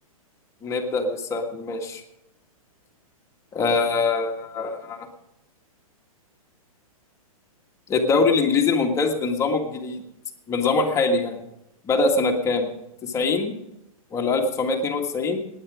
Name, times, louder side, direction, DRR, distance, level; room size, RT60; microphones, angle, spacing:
voice 1, 0.6-2.0 3.5-5.0 7.9-10.0 10.5-11.4 11.8-12.7 13.0-13.6 14.1-15.4, left 3 dB, 15° left, 2 dB, 1.7 m, -23 dB
19.0 x 9.5 x 5.0 m, 0.87 s
hypercardioid pair, 150°, 19 cm